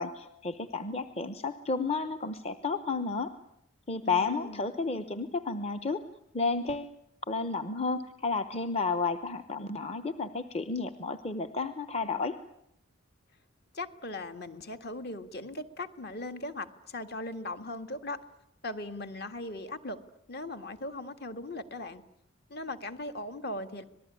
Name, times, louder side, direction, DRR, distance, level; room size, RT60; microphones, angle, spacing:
voice 1, 0.0-3.3 3.9-6.0 6.3-6.9 7.3-12.3, left 4 dB, 30° left, 10 dB, 0.9 m, -32 dB
voice 2, 4.0-4.7 13.7-18.2 18.6-20.0 20.3-22.0 22.5-23.8, left 2 dB, 50° left, 8 dB, 1.9 m, -39 dB
26.0 x 19.5 x 10.0 m, 0.81 s
head